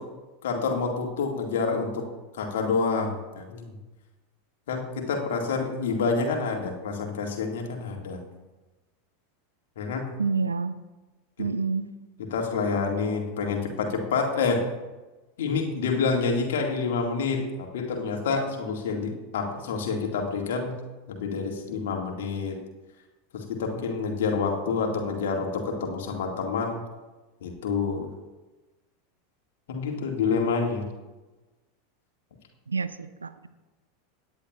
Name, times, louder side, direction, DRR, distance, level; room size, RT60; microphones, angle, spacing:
voice 1, 0.4-2.1 2.4-3.7 4.7-8.2 9.8-10.1 12.3-14.6 15.4-20.7 21.1-22.6 23.3-26.8 27.4-28.1 29.7-30.8, left 4 dB, 65° left, 2 dB, 1.8 m, -28 dB
voice 2, 10.2-10.7 11.4-11.9 32.7-33.5, right 4 dB, 80° right, 13 dB, 0.5 m, -28 dB
17.5 x 9.9 x 2.3 m, 1.2 s
figure-of-eight pair, 85°, 0 cm